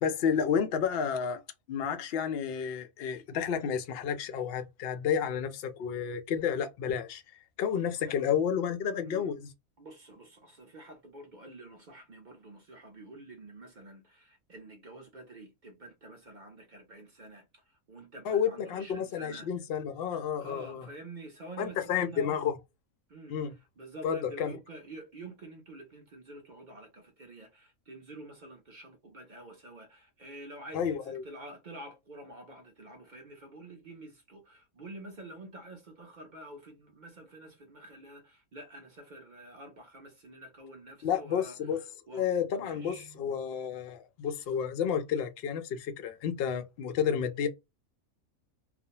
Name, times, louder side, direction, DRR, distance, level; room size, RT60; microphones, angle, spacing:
voice 1, 0.0-1.4 1.7-7.2 7.6-9.5 18.3-20.9 21.6-22.6 23.3-23.5 24.0-24.5 30.7-31.2 41.0-41.8 42.1-47.5, left 7 dB, 65° left, 0.6 m, -31 dB
voice 2, 7.8-8.2 9.0-9.3 9.8-19.5 20.4-22.3 23.1-23.4 23.8-42.3 42.6-43.2, right 1 dB, 50° right, 0.5 m, -48 dB
2.5 x 2.1 x 2.8 m
omnidirectional pair, 1.5 m